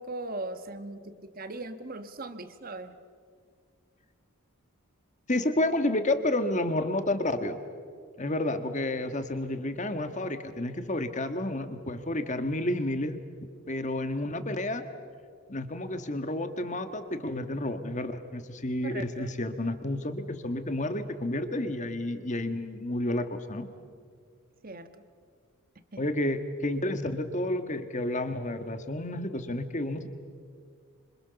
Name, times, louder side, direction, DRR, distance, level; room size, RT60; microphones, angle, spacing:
voice 1, 0.0-3.0 18.8-19.3 24.6-25.1 25.9-26.0, right 2 dB, 40° right, 10 dB, 1.3 m, -39 dB
voice 2, 5.3-7.6 8.2-13.2 13.7-14.8 15.5-23.7 26.0-30.1, left 1 dB, 35° left, 9 dB, 1.6 m, -30 dB
26.5 x 26.0 x 7.0 m, 2.1 s
head